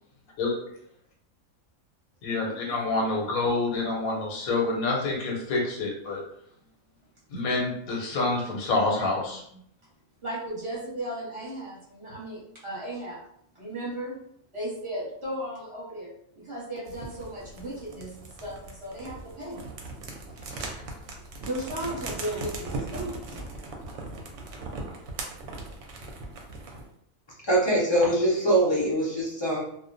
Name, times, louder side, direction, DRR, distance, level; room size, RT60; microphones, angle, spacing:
voice 1, 2.2-6.2 7.3-9.4, left 3 dB, 90° left, -2 dB, 1.1 m, -27 dB
voice 2, 10.2-13.2 13.5-14.1 14.5-16.1 16.4-19.6 20.5-20.7 21.4-23.4, right 1 dB, 25° right, -6 dB, 0.9 m, -35 dB
sound 1, 16.9-26.9, right 2 dB, 70° right, 0.8 m, -39 dB
voice 3, 27.5-29.6, right 1 dB, 40° left, -6 dB, 0.4 m, -23 dB
2.3 x 2.1 x 2.5 m, 0.70 s
omnidirectional pair, 1.4 m